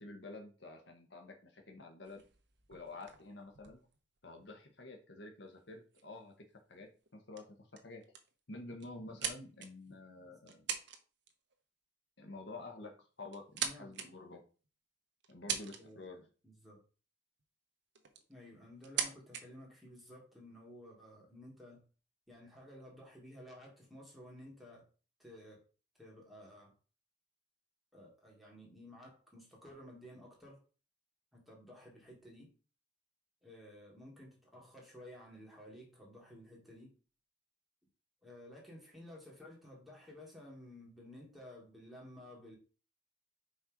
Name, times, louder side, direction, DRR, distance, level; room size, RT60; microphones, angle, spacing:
voice 1, 0.0-2.2 2.7-3.8 4.2-6.3 6.7-8.0 8.5-10.7 12.2-14.4 15.3-16.3, left 2 dB, 65° left, 4 dB, 1.2 m, -49 dB
sound 1, 2.0-4.6 5.5-5.6 5.9-6.2 6.8-7.1 7.4-7.5 7.8-8.3 8.8-9.9 10.5-11.0 11.3-11.5 12.6-12.7 13.2-14.1 14.6-14.7 15.2-16.1 17.4-17.5 17.9-18.3 18.8-19.4, right 8 dB, 65° right, 1.0 m, -41 dB
voice 2, 13.6-13.9 15.5-16.0 16.4-16.8 18.3-21.8 22.3-24.8 25.2-25.6 26.0-26.7 27.9-30.6 31.3-32.5 33.4-37.0 38.2-42.6, left 1 dB, ahead, -3 dB, 2.5 m, -54 dB
5.6 x 4.3 x 5.0 m, 0.36 s
head